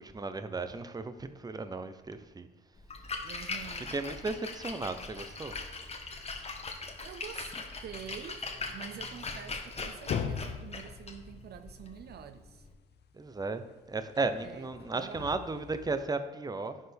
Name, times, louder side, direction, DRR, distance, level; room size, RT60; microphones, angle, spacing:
voice 1, 0.0-2.5 3.9-5.6 13.1-13.6 13.9-16.8, right 3 dB, 20° right, 10 dB, 0.7 m, -35 dB
Splash splatter, 2.8-12.7, left 3 dB, 35° left, 1.2 m, -41 dB
voice 2, 3.2-4.0 7.0-7.5 7.8-12.7 14.4-15.6, right 9 dB, 55° right, 10 dB, 0.4 m, -47 dB
sound 1, 9.8-13.0 14.2-16.0, left 7 dB, 60° left, 0.7 m, -40 dB
11.0 x 4.3 x 3.5 m, 1.1 s
supercardioid pair, 65°, 19 cm